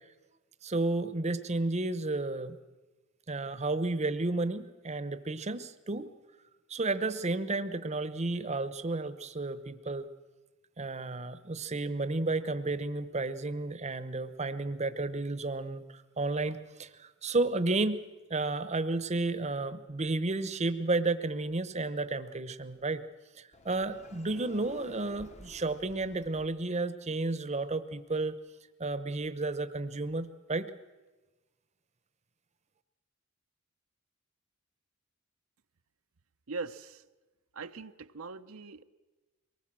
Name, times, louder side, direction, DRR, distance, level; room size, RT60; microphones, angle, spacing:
voice 1, 0.6-2.6 3.3-6.1 6.7-10.1 10.8-18.0 18.3-23.0 23.4-28.4 28.8-30.7, right 2 dB, 30° right, 12 dB, 0.9 m, -32 dB
Sliding door, 23.5-26.5, left 2 dB, 30° left, 1.1 m, -52 dB
voice 2, 36.5-37.1 37.5-38.8, right 4 dB, 70° right, 9 dB, 0.7 m, -41 dB
23.5 x 19.0 x 7.6 m, 1.2 s
head